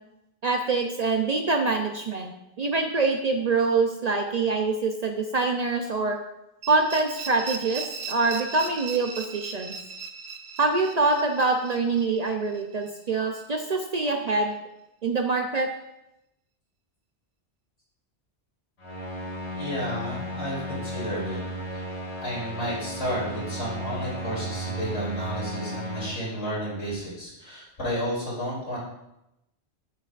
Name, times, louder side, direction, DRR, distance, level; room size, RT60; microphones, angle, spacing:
voice 1, 0.4-6.2 6.7-9.8 10.6-14.6 15.0-15.7, right 3 dB, 50° right, 3 dB, 0.5 m, -25 dB
sound 1, 6.6-13.4, right 5 dB, 70° right, 0.9 m, -38 dB
sound 2, 18.8-26.1, equal, 70° left, 1.9 m, -34 dB
voice 2, 19.6-21.4 21.7-21.8 22.2-28.8, equal, 90° left, -7 dB, 3.2 m, -32 dB
8.3 x 6.6 x 2.4 m, 0.88 s
omnidirectional pair, 1.1 m